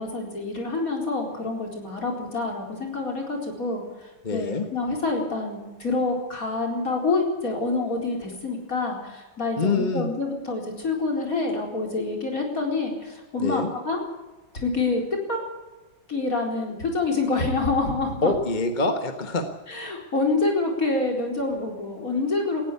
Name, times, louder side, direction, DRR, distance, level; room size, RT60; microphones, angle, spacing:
voice 1, 0.0-14.0 14.5-15.0 15.3-15.4 16.1-18.3 19.7-22.6, left 3 dB, 45° left, 1 dB, 4.7 m, -27 dB
voice 2, 4.2-4.6 9.6-10.1 13.4-13.7 18.2-19.4, left 3 dB, 25° left, 6 dB, 1.3 m, -25 dB
19.0 x 16.0 x 8.4 m, 1.2 s
omnidirectional pair, 2.1 m